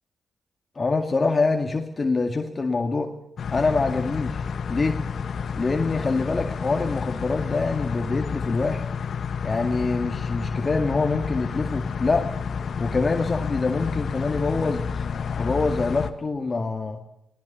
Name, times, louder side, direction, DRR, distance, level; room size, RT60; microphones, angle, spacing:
voice 1, 0.8-3.1 3.5-4.4 4.7-5.0 5.6-8.9 9.4-12.3 12.8-15.1 15.4-17.0, left 3 dB, 40° left, 4 dB, 2.1 m, -25 dB
sound 1, 3.4-16.1, left 6 dB, 65° left, 1.5 m, -30 dB
20.0 x 18.5 x 7.1 m, 0.85 s
supercardioid pair, 45°, 0 cm